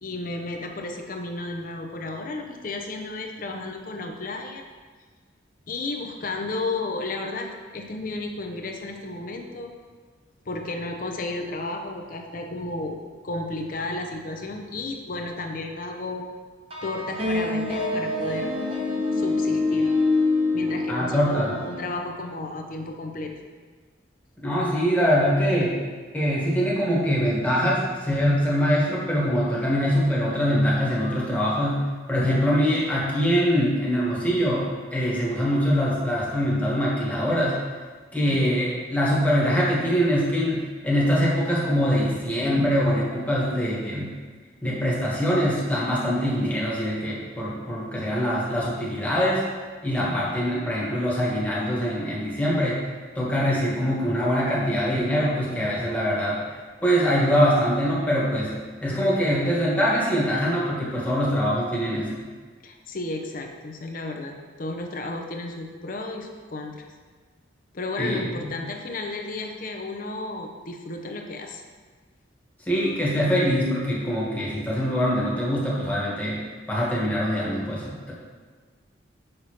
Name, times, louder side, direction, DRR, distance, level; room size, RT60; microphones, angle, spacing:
voice 1, 0.0-4.6 5.7-9.7 10.5-13.0 13.2-16.3 16.8-18.5 19.1-19.9 20.5-23.3 38.3-38.5 50.0-50.4 62.6-66.9 67.7-71.6, left 2 dB, 45° left, 3 dB, 0.6 m, -33 dB
sound 1, 16.7-21.9, left 3 dB, 30° right, 0.7 m, -25 dB
voice 2, 20.9-21.5 24.4-25.8 26.1-37.6 38.1-44.1 44.6-49.4 49.8-52.8 53.1-56.4 56.8-58.5 58.8-62.1 68.0-68.5 72.7-76.4 76.7-78.1, equal, 10° left, -6 dB, 1.3 m, -23 dB
6.5 x 5.4 x 2.9 m, 1.5 s
head